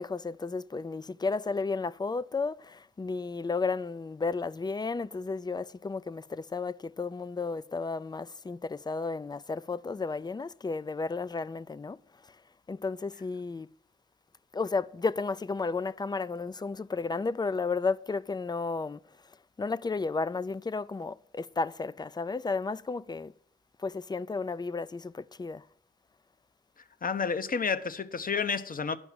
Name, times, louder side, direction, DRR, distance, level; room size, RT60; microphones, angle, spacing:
voice 1, 0.0-12.0 12.7-13.7 14.5-19.0 19.6-23.3 23.8-25.6, left 4 dB, 20° left, 0.4 m, -33 dB
voice 2, 27.0-29.0, left 5 dB, 40° left, 0.7 m, -30 dB
9.7 x 5.8 x 7.2 m
cardioid pair, 70°, 21 cm